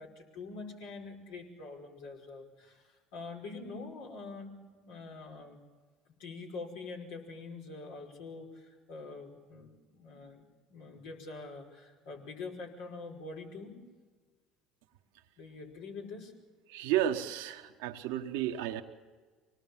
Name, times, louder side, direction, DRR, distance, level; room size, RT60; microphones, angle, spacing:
voice 1, 0.0-4.5 4.8-5.6 6.2-13.8 15.4-16.3, left 3 dB, 80° left, -1 dB, 5.2 m, -45 dB
voice 2, 16.7-18.8, right 11 dB, 75° right, 5 dB, 1.2 m, -32 dB
25.5 x 19.0 x 7.4 m, 1.4 s
hypercardioid pair, 75°, 0 cm